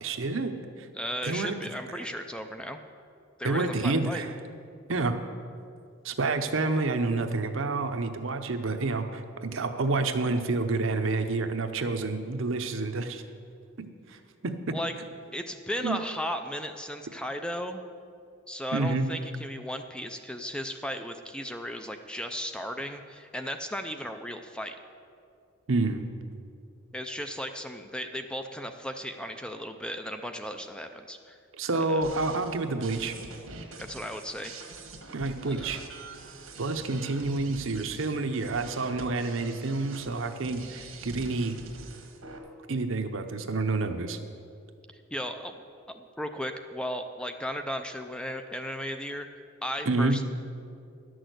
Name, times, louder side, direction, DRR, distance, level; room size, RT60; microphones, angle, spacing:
voice 1, 0.0-0.9 1.2-1.5 1.9-2.1 3.4-4.3 4.9-5.1 6.0-13.2 13.8-14.2 14.4-14.8 15.8-16.0 18.7-19.1 25.7-26.1 31.6-33.1 35.1-35.8 36.6-41.6 42.7-44.2 49.9-50.2, right 3 dB, 70° right, 7 dB, 0.8 m, -29 dB
voice 2, 0.9-2.8 3.4-4.2 14.7-14.9 15.3-17.8 18.5-24.8 26.9-31.4 31.7-32.0 33.8-34.5 35.5-35.8 44.9-45.6 45.9-50.2, equal, 5° left, 6 dB, 0.4 m, -35 dB
sound 1, 32.0-42.4, right 3 dB, 90° right, 1.4 m, -45 dB
11.0 x 6.3 x 7.9 m, 2.4 s
head